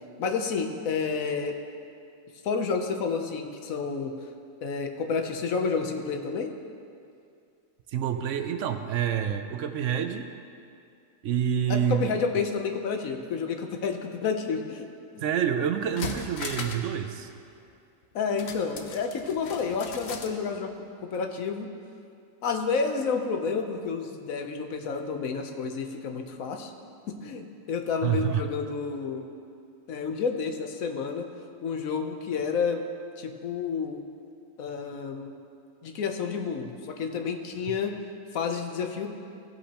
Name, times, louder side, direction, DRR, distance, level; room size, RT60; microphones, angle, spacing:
voice 1, 0.2-1.5 2.4-4.1 4.6-6.5 11.7-14.9 15.1-15.2 18.1-21.7 22.4-26.7 27.1-29.3 29.9-31.3 31.6-32.8 33.2-34.0 34.6-35.3 35.8-37.9 38.3-39.1, left 5 dB, 85° left, 5 dB, 1.2 m, -30 dB
voice 2, 7.9-10.3 11.2-12.1 15.2-17.3 28.0-28.5, right 9 dB, 70° right, 7 dB, 0.9 m, -27 dB
sound 1, 15.3-15.4 15.8-16.9 17.2-17.3 18.4-20.4 20.7-20.8, left 5 dB, 60° left, 0.9 m, -38 dB
15.5 x 8.3 x 2.9 m, 2.4 s
omnidirectional pair, 1.4 m